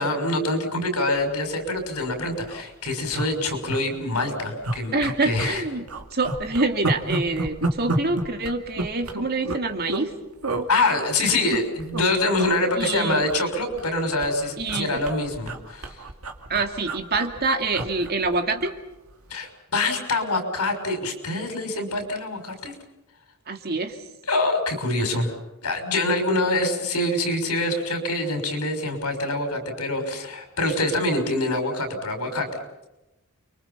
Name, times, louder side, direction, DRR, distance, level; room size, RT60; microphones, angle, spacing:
voice 1, 0.0-4.9 5.2-5.6 10.7-15.9 19.3-22.7 24.3-25.3 25.6-32.5, left 2 dB, 85° left, 5 dB, 6.1 m, -25 dB
sound 1, 1.7-1.8 2.1-2.2 2.4-2.6 3.1-3.8 4.1-4.3 4.6-5.6 5.9-10.1 10.4-10.7 11.3-12.0 12.3-12.5 12.8-13.9 14.2-18.8 19.1-19.3, right 2 dB, 75° right, 2.4 m, -30 dB
voice 2, 4.9-5.8 6.1-10.1 12.7-13.3 14.6-15.0 16.5-18.7 23.5-24.0, right 3 dB, 45° right, 6 dB, 2.4 m, -26 dB
30.0 x 23.5 x 5.7 m, 0.96 s
head